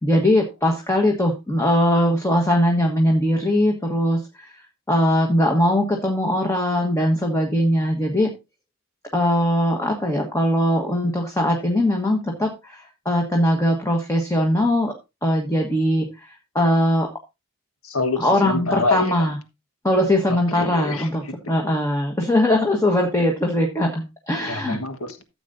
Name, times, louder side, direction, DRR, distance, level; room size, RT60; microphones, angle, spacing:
voice 1, 0.0-4.5 4.9-8.3 9.1-14.9 15.2-16.1 16.5-17.1 18.2-19.4 19.8-24.8, left 1 dB, 15° left, 2 dB, 1.4 m, -20 dB
voice 2, 17.8-19.3 20.3-21.1 21.4-21.5 24.4-25.2, left 3 dB, 70° left, 9 dB, 1.5 m, -26 dB
14.0 x 7.9 x 2.6 m, 0.24 s
head